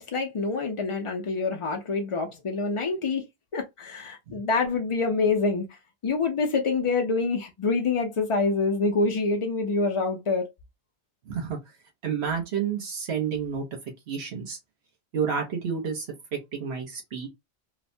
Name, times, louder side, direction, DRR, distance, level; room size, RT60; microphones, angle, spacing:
voice 1, 0.1-3.2 3.5-5.7 6.0-10.5, left 4 dB, 55° left, 0.3 m, -26 dB
voice 2, 11.3-11.6 12.0-13.6 14.1-14.6 15.1-16.1 16.3-17.3, right 7 dB, 75° right, 1.1 m, -30 dB
3.0 x 2.1 x 2.5 m
omnidirectional pair, 1.1 m